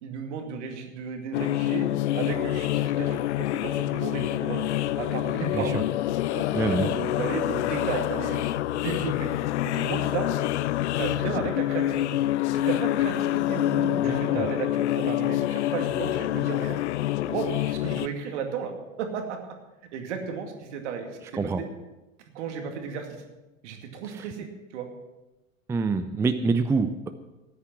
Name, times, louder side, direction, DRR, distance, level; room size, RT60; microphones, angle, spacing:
voice 1, 0.0-1.9 2.1-4.6 5.0-5.8 6.3-8.4 8.7-9.3 9.6-10.3 11.0-12.1 12.5-16.8 17.3-19.4 19.9-21.7 22.3-23.1 23.6-24.9, right 6 dB, 60° right, 4 dB, 2.4 m, -34 dB
sound 1, 1.3-18.1, left 14 dB, 60° left, 0.6 m, -27 dB
voice 2, 6.5-6.9 14.0-14.4 21.4-21.6 24.1-24.3 25.7-27.1, right 4 dB, 5° right, 9 dB, 0.5 m, -26 dB
14.0 x 9.9 x 6.1 m, 1.1 s
figure-of-eight pair, 85°, 40 cm